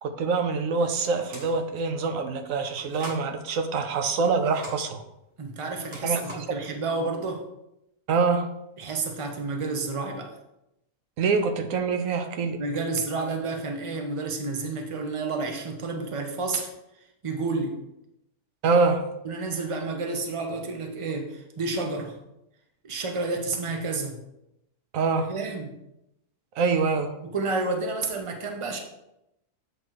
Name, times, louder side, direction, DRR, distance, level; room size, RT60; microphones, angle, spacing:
voice 1, 0.0-5.0 6.0-6.2 8.1-8.5 11.2-12.6 18.6-19.1 24.9-25.3 26.6-27.1, right 4 dB, 70° right, 7 dB, 1.0 m, -25 dB
sound 1, 1.2-1.7 2.7-3.3 4.2-4.8 5.8-6.6, equal, 50° right, 1.5 m, -42 dB
voice 2, 5.4-7.4 8.8-10.3 12.6-16.7 17.2-17.8 19.2-22.2 22.8-24.2 25.3-25.7 27.2-28.8, right 3 dB, 30° right, 3 dB, 0.7 m, -30 dB
8.0 x 3.2 x 4.5 m, 0.85 s
omnidirectional pair, 1.6 m